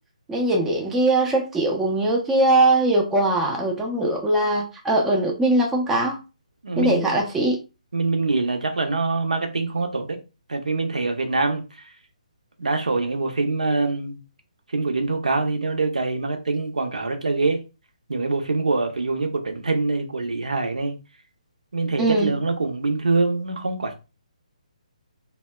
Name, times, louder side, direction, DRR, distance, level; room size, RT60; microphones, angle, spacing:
voice 1, 0.3-6.2 6.8-7.6 22.0-22.3, right 2 dB, 5° right, 0.4 m, -21 dB
voice 2, 6.6-7.1 7.9-10.2 10.5-11.6 12.6-14.2 14.7-17.6 18.1-21.0 21.7-23.9, right 3 dB, 75° right, 0.6 m, -24 dB
2.7 x 2.1 x 2.2 m
figure-of-eight pair, 145°, 4 cm